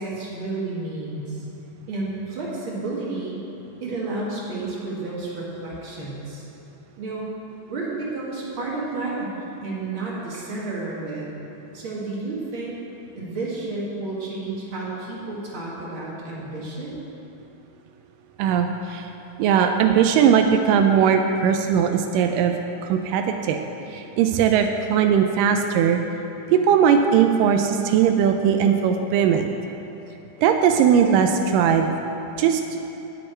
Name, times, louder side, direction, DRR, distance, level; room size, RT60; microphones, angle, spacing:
voice 1, 0.0-1.5 1.9-3.4 3.8-6.4 7.0-7.3 7.7-9.3 9.6-11.3 11.7-12.8 13.2-17.0, right 3 dB, 45° right, -5 dB, 2.1 m, -31 dB
voice 2, 18.4-19.1 19.4-22.5 22.8-23.6 23.9-26.0 26.5-29.5 30.4-31.9 32.4-32.6, right 7 dB, 85° right, 5 dB, 2.2 m, -19 dB
17.5 x 6.6 x 4.4 m, 3.0 s
omnidirectional pair, 3.8 m